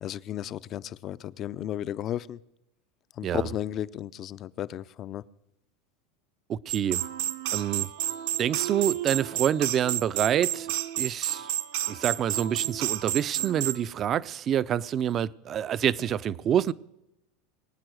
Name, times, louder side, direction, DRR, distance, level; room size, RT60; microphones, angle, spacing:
voice 1, 0.0-2.4 3.1-5.2, left 11 dB, 40° left, 0.5 m, -34 dB
voice 2, 6.5-7.0 7.5-7.9 8.4-10.7 11.0-11.5 11.9-16.7, right 10 dB, 35° right, 0.5 m, -27 dB
sound 1, 6.7-13.8, right 13 dB, 75° right, 1.0 m, -30 dB
22.0 x 8.9 x 6.4 m
supercardioid pair, 130°, 0 cm